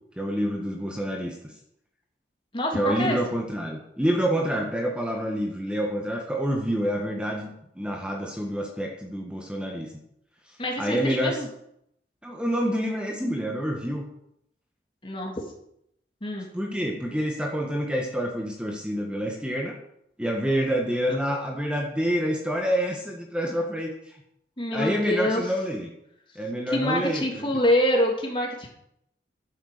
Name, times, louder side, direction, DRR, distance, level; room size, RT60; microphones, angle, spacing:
voice 1, 0.2-1.3 2.7-9.9 10.8-11.4 12.2-14.1 16.5-19.8 20.2-24.2 24.7-25.9 26.3-27.4, equal, 5° right, 0 dB, 1.7 m, -27 dB
voice 2, 2.5-3.2 10.6-11.5 15.0-15.3 16.2-16.5 24.6-25.5 26.7-28.7, left 1 dB, 30° left, 1 dB, 2.8 m, -25 dB
12.0 x 9.2 x 6.9 m, 0.75 s
head